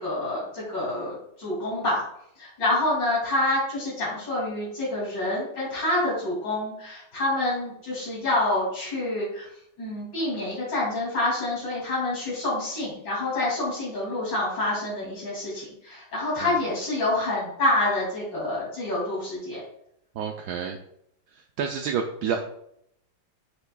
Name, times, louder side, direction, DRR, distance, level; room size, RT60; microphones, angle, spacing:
voice 1, 0.0-2.0 2.4-9.5 9.8-19.6, left 2 dB, 70° left, -7 dB, 3.3 m, -27 dB
voice 2, 20.2-20.8 21.6-22.4, right 7 dB, 70° right, 3 dB, 1.1 m, -29 dB
8.0 x 6.4 x 2.3 m, 0.73 s
omnidirectional pair, 2.0 m